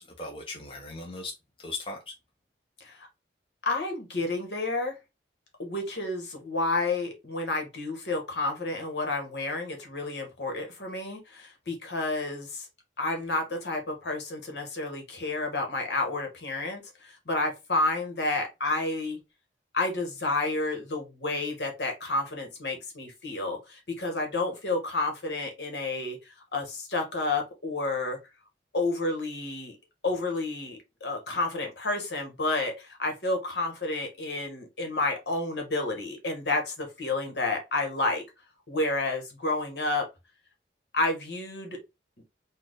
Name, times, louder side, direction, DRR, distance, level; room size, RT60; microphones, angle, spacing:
voice 1, 0.0-2.1, left 2 dB, 30° left, 0.9 m, -39 dB
voice 2, 3.6-5.0 5.6-12.7 13.0-19.2 19.7-28.2 28.7-29.8 30.0-38.2 38.7-40.0 40.9-41.8, left 2 dB, 70° left, 1.6 m, -30 dB
4.4 x 2.5 x 4.0 m
head